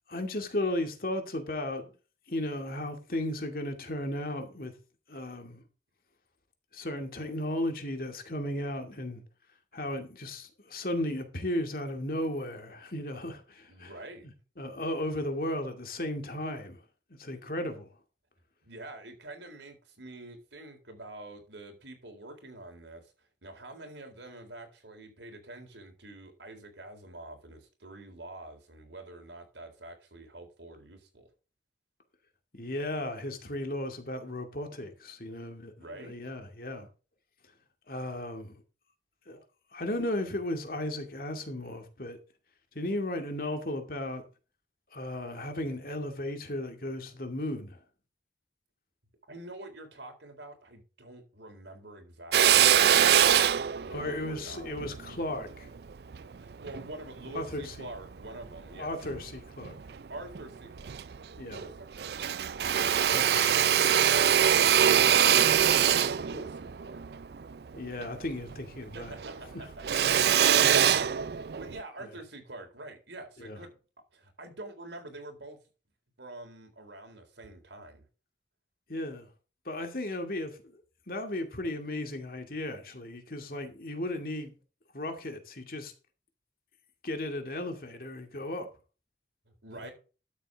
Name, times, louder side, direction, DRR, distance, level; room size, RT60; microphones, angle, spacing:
voice 1, 0.1-1.9 2.3-4.7 5.1-5.6 6.7-9.2 9.7-13.9 14.2-16.8 17.1-17.9 32.6-36.9 37.9-38.6 39.3-39.4 39.7-42.2 42.7-44.2 44.9-47.8 53.9-55.7 57.3-57.9 58.8-59.8 61.4-61.6 63.1-63.6 67.7-69.2 69.5-69.6 70.7-71.0 72.0-72.1 73.4-73.6 78.9-79.3 79.6-84.5 84.9-85.9 87.0-88.7 89.8-89.9, left 1 dB, 55° left, 2.4 m, -35 dB
voice 2, 13.7-14.3 18.6-31.3 35.8-36.2 49.3-54.7 56.3-58.9 60.1-60.9 61.3-62.1 63.1-63.3 64.6-67.0 68.9-71.3 71.6-73.7 74.1-75.6 76.2-78.1 89.4-89.9, right 2 dB, 85° right, 4.0 m, -46 dB
Drill, 52.3-56.9 57.4-58.6 59.0-60.0 60.3-60.4 60.7-61.7 62.0-68.6 68.9-71.8, right 9 dB, 65° right, 0.4 m, -24 dB
12.5 x 7.8 x 3.7 m
head